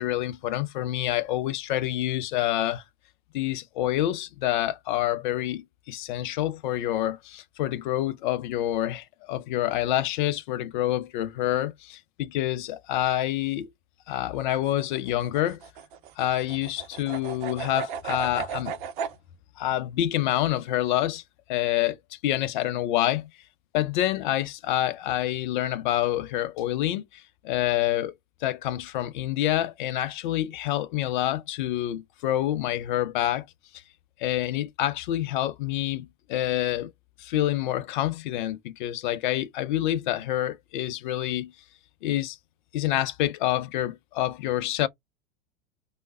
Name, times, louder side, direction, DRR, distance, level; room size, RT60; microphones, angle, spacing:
voice 1, 0.0-2.8 3.3-13.7 14.1-15.6 16.2-18.7 19.6-21.2 21.5-23.3 23.7-28.1 28.4-33.5 34.2-36.9 37.2-41.5 42.0-42.4 42.7-44.9, left 13 dB, 55° left, 0.5 m, -27 dB
sound 1, 14.4-19.2, right 7 dB, 60° right, 0.5 m, -35 dB
3.2 x 2.0 x 2.5 m
figure-of-eight pair, 85°, 29 cm